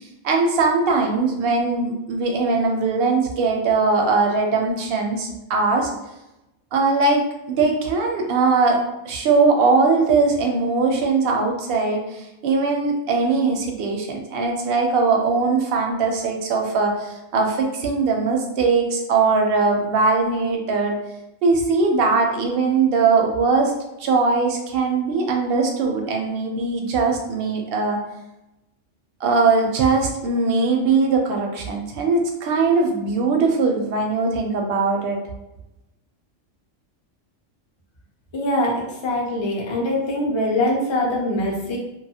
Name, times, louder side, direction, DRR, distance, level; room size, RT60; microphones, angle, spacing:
voice 1, 0.2-5.9 6.7-8.8 9.1-21.0 21.4-23.7 24.0-28.0 29.2-35.2, right 4 dB, 65° right, 1 dB, 0.6 m, -20 dB
voice 2, 38.3-41.8, left 1 dB, 50° left, -2 dB, 0.3 m, -23 dB
2.6 x 2.3 x 2.7 m, 0.91 s
omnidirectional pair, 1.4 m